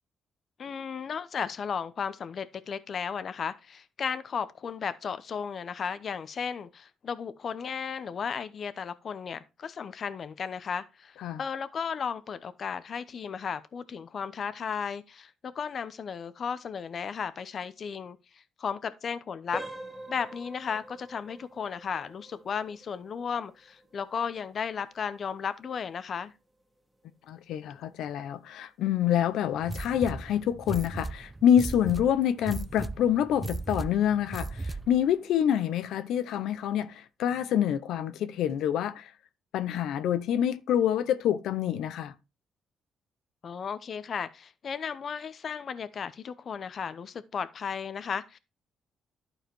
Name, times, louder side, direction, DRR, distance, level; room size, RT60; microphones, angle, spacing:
voice 1, 0.6-19.6 20.1-26.3 43.4-48.4, left 6 dB, 50° left, 0.8 m, -35 dB
sound 1, 19.5-30.2 30.5-30.8 31.4-31.5 32.0-32.1, right 1 dB, 5° right, 2.1 m, -48 dB
voice 2, 27.3-39.1 39.5-42.1, left 10 dB, 80° left, 0.8 m, -27 dB
sound 2, 29.6-35.0, right 2 dB, 20° right, 0.7 m, -37 dB
11.5 x 4.9 x 4.5 m
cardioid pair, 90°, 0 cm